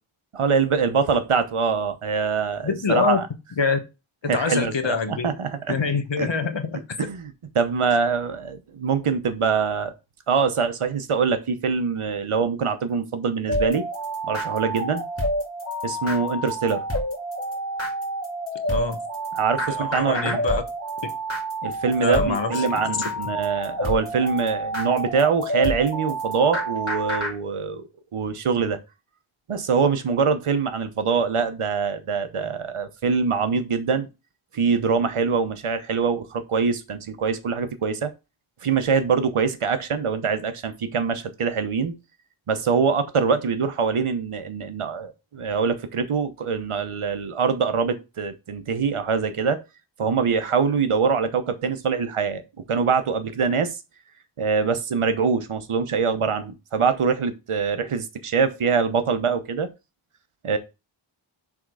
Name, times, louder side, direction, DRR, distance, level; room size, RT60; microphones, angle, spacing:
voice 1, 0.3-3.2 4.3-5.8 6.2-6.3 7.0-9.9 10.3-13.8 14.3-15.0 15.8-16.8 19.3-20.4 21.6-27.9 28.1-28.8 29.5-34.1 34.5-38.1 38.6-41.9 42.5-49.6 50.0-52.4 52.7-53.8 54.4-59.7 60.4-60.6, right 5 dB, 80° right, 1.0 m, -24 dB
voice 2, 2.6-3.2 3.6-3.8 4.3-5.3 5.7-6.8 18.7-19.0 19.7-20.6 22.0-22.6, left 4 dB, 60° left, 1.1 m, -25 dB
sound 1, 13.5-27.3, right 1 dB, 25° left, 2.0 m, -28 dB
6.2 x 3.6 x 4.8 m
wide cardioid pair, 75°, 50 cm